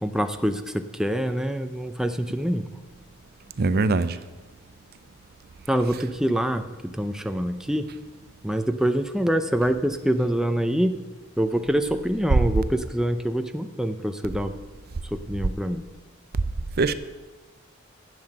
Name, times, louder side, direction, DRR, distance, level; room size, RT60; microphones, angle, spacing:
voice 1, 0.0-2.7 5.7-7.9 8.4-10.9 11.4-14.5 15.1-15.9, equal, 5° right, 0.5 m, -25 dB
voice 2, 3.6-4.2 16.8-16.9, right 3 dB, 50° right, 0.5 m, -21 dB
11.0 x 7.8 x 7.7 m
head